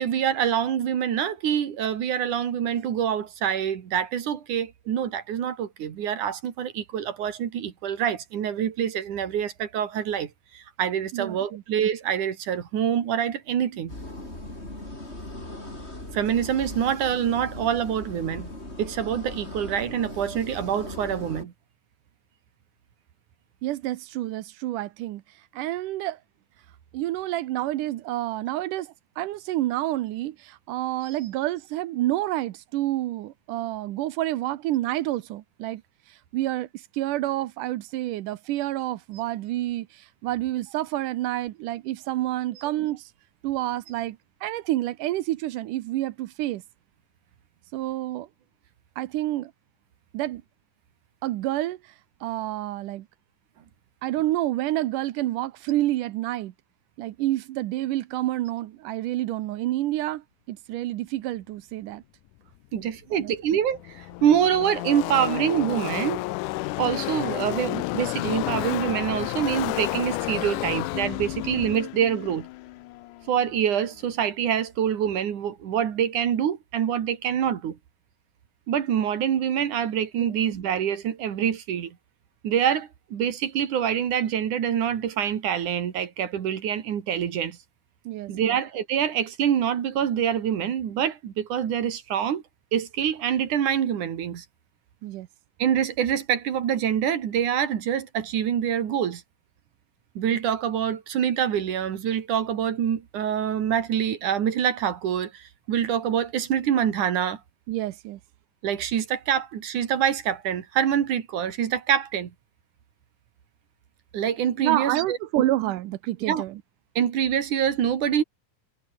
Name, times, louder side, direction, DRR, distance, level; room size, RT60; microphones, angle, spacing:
voice 1, 0.0-13.9 16.1-18.5 18.8-21.5 62.7-66.2 66.8-72.5 73.3-77.8 78.7-82.0 82.4-87.6 88.3-92.4 92.7-94.4 95.6-99.2 100.1-107.4 108.6-112.3 114.1-115.2 116.3-116.4 117.0-118.2, right 9 dB, 70° right, 3.5 m, -26 dB
voice 2, 11.1-11.6 23.6-25.2 25.5-26.2 26.9-35.8 36.1-43.1 43.4-46.6 47.7-48.3 49.0-49.5 50.1-50.4 51.2-52.0 52.2-53.1 54.0-56.5 57.0-62.0 63.1-63.3 80.2-80.3 88.1-88.6 95.0-95.3 107.7-108.2 114.6-116.6, right 15 dB, 90° right, 2.5 m, -28 dB
sound 1, 13.9-21.4, left 1 dB, 20° left, 6.7 m, -39 dB
Car passing by / Race car auto racing, 63.0-63.1 63.2-73.8, left 20 dB, 80° left, 2.1 m, -31 dB
omnidirectional pair, 3.6 m